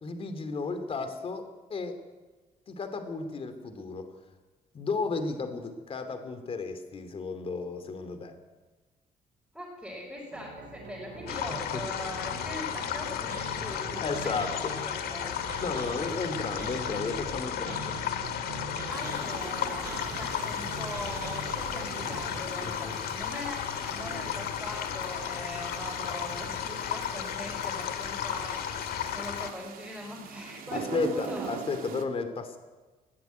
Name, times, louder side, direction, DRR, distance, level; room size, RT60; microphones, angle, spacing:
voice 1, 0.0-2.0 2.7-4.1 4.7-8.3 11.5-11.8 14.0-14.7 15.6-17.9 22.8-22.9 30.7-32.6, left 4 dB, 35° left, 9 dB, 2.8 m, -33 dB
voice 2, 9.5-15.3 18.9-31.5, equal, ahead, -5 dB, 5.4 m, -41 dB
sound 1, 10.3-22.4, right 4 dB, 85° right, 5.1 m, -43 dB
sound 2, 11.3-29.5, left 9 dB, 85° left, 2.0 m, -34 dB
sound 3, 18.9-32.0, right 7 dB, 65° right, 2.5 m, -43 dB
21.0 x 16.0 x 9.4 m, 1.2 s
cardioid pair, 145°, 16 cm